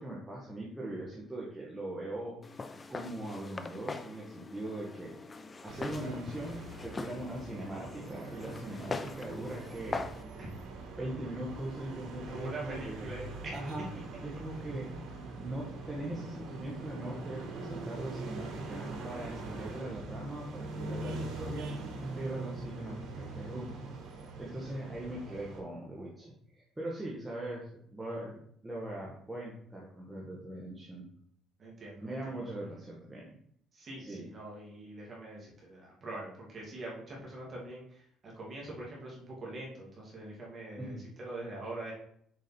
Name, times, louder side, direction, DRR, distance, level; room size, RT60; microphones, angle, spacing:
voice 1, 0.0-2.4 2.9-5.4 5.6-10.1 11.0-13.9 14.2-14.9 15.3-21.7 22.1-23.8 24.4-28.4 28.6-31.1 32.0-33.4 34.0-34.2 40.8-41.0, right 1 dB, 5° right, -4 dB, 1.1 m, -41 dB
Walk footsteps, 2.4-10.2, left 3 dB, 20° left, 0.4 m, -42 dB
sound 1, 5.7-25.6, right 3 dB, 85° right, 2.5 m, -42 dB
voice 2, 12.3-13.6 19.5-19.6 31.6-32.7 33.7-41.9, right 2 dB, 30° right, -4 dB, 2.1 m, -44 dB
6.7 x 5.1 x 4.2 m, 0.66 s
cardioid pair, 175°, 0 cm